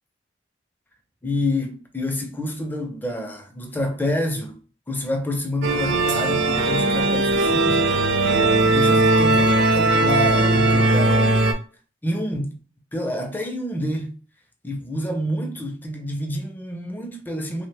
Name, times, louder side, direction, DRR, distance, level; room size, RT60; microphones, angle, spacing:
voice 1, 1.2-4.6 4.9-8.0 8.7-11.6 12.0-12.6 12.9-14.2 14.6-17.7, left 1 dB, 10° left, 0.4 m, -28 dB
sound 1, 5.6-11.5, right 2 dB, 65° right, 0.5 m, -18 dB
2.9 x 2.1 x 3.2 m
head